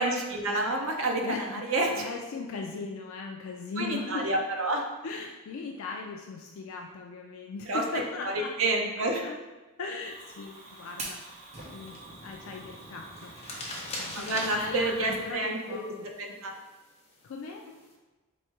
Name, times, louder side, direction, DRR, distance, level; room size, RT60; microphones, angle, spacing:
voice 1, 0.0-2.1 3.8-4.8 7.7-8.3 8.6-9.2 14.1-15.8 16.2-16.6, right 2 dB, 65° right, 2 dB, 0.7 m, -29 dB
voice 2, 1.2-1.6 1.9-4.3 5.0-8.5 9.1-9.4 9.8-11.3 11.7-16.1 17.2-17.7, left 4 dB, 70° left, 1 dB, 0.4 m, -38 dB
Fire, 10.0-15.3, right 2 dB, 30° right, 0.7 m, -45 dB
sound 1, 10.5-17.9, left 1 dB, 30° left, 0.7 m, -44 dB
3.5 x 3.1 x 4.4 m, 1.2 s
head